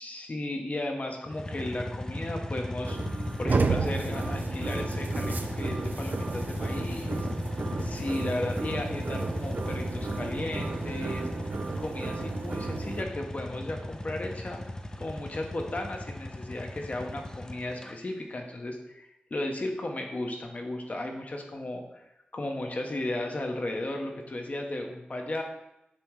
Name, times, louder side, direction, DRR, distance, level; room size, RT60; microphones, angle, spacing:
voice 1, 0.0-3.1 3.4-7.3 7.8-11.3 11.8-14.6 15.0-22.0 22.3-25.4, left 1 dB, 45° left, 2 dB, 1.1 m, -35 dB
sound 1, 1.3-17.9, left 1 dB, 20° left, 0.5 m, -36 dB
sound 2, 2.8-13.0, right 4 dB, 60° right, 0.5 m, -33 dB
7.3 x 3.1 x 4.8 m, 0.89 s
wide cardioid pair, 70°, 3 cm